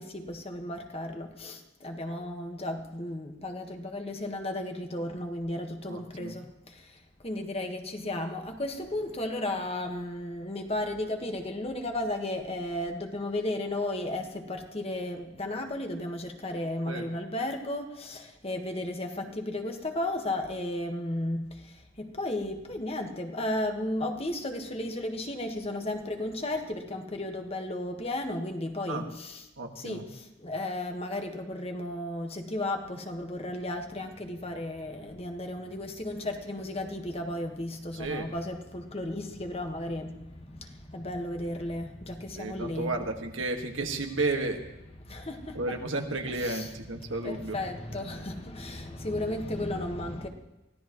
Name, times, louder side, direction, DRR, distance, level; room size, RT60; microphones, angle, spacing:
voice 1, 0.0-29.4 29.7-42.9 45.0-45.8 46.4-46.7 47.0-50.3, left 1 dB, 30° left, 4 dB, 1.4 m, -34 dB
voice 2, 5.9-6.4 16.9-17.0 28.9-29.1 29.6-30.1 37.9-38.3 42.4-44.6 45.5-47.6, right 2 dB, 75° right, 3 dB, 1.7 m, -32 dB
24.0 x 16.5 x 3.1 m, 0.97 s
head